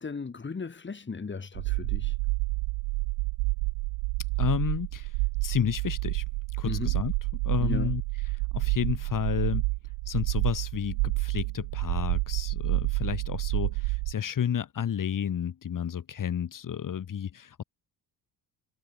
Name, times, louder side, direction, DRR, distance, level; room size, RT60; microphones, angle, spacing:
voice 1, 0.0-2.2 6.6-7.0 7.6-7.9, left 4 dB, 25° left, 5.9 m, -36 dB
sound 1, 1.5-14.1, right 28 dB, 85° right, 4.8 m, -29 dB
voice 2, 4.4-5.1 5.4-6.2 6.6-7.1 7.4-8.0 8.5-9.6 10.1-17.6, left 9 dB, 50° left, 7.7 m, -31 dB
supercardioid pair, 80°, 42 cm